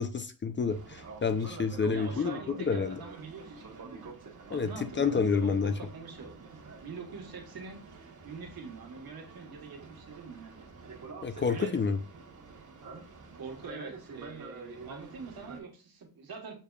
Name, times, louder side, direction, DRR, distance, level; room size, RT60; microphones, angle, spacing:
voice 1, 0.0-2.4 2.7-3.0 4.5-4.7 5.0-5.7 11.2-12.0, left 5 dB, 30° left, 9 dB, 0.4 m, -28 dB
Boat Water vehicle, 0.7-15.6, right 4 dB, 55° right, 1.1 m, -48 dB
voice 2, 1.8-4.1 4.5-6.5 6.8-7.8 8.2-10.5 11.5-11.7 13.3-16.6, right 4 dB, 75° right, 2 dB, 1.3 m, -44 dB
6.5 x 3.4 x 2.3 m, 0.34 s
wide cardioid pair, 130°, 37 cm